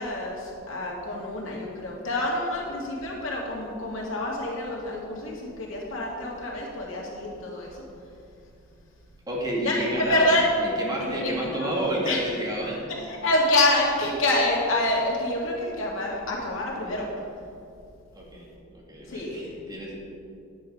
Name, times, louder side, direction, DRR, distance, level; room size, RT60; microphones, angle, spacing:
voice 1, 0.0-7.7 9.6-10.5 11.0-11.7 12.0-12.2 13.0-17.1 19.1-19.6, left 1 dB, 75° left, -3 dB, 2.1 m, -27 dB
voice 2, 9.3-10.3 10.6-12.9 18.1-18.5 18.7-20.0, right 1 dB, 20° right, -4 dB, 2.0 m, -30 dB
10.0 x 7.4 x 4.9 m, 2.5 s
head